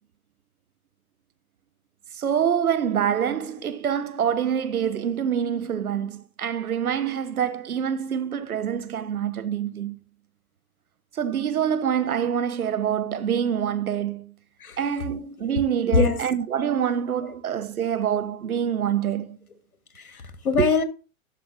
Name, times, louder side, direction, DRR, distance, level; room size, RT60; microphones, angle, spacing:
voice 1, 2.1-10.0 11.1-14.3 14.8-19.4 20.6-20.7, right 8 dB, 80° right, 1.0 m, -26 dB
voice 2, 19.9-20.8, left 4 dB, 80° left, 1.6 m, -23 dB
13.0 x 5.2 x 3.5 m
hypercardioid pair, 115°, 43 cm